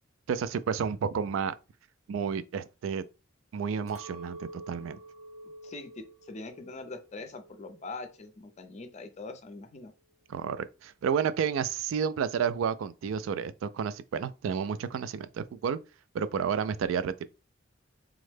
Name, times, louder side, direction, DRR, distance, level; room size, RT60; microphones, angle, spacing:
voice 1, 0.3-1.6 2.1-3.1 3.5-5.0 10.3-15.8 16.1-17.3, right 7 dB, 80° right, 0.3 m, -31 dB
Chink clink, 3.9-8.3 8.6-9.2, right 1 dB, 35° right, 0.7 m, -49 dB
voice 2, 5.6-9.9, left 3 dB, 35° left, 0.5 m, -43 dB
3.6 x 2.1 x 3.2 m
head